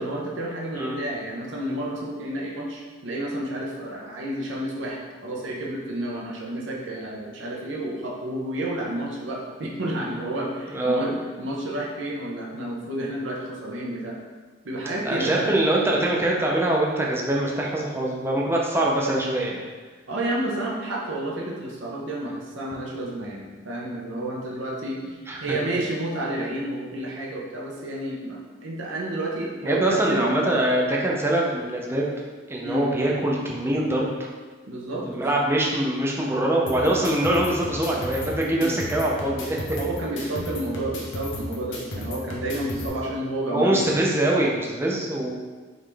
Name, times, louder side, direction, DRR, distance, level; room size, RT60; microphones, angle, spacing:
voice 1, 0.0-14.2 14.6-15.6 20.1-30.3 32.6-32.9 34.7-35.3 38.6-38.8 39.8-44.0, right 1 dB, 90° right, -2 dB, 0.8 m, -30 dB
voice 2, 10.7-11.0 15.0-19.6 25.3-25.6 29.6-32.1 32.5-34.1 35.1-39.6 43.5-45.3, right 1 dB, 15° right, -3 dB, 0.5 m, -23 dB
sound 1, 36.7-42.9, left 1 dB, 75° left, 0.7 m, -35 dB
3.7 x 3.1 x 3.3 m, 1.4 s
head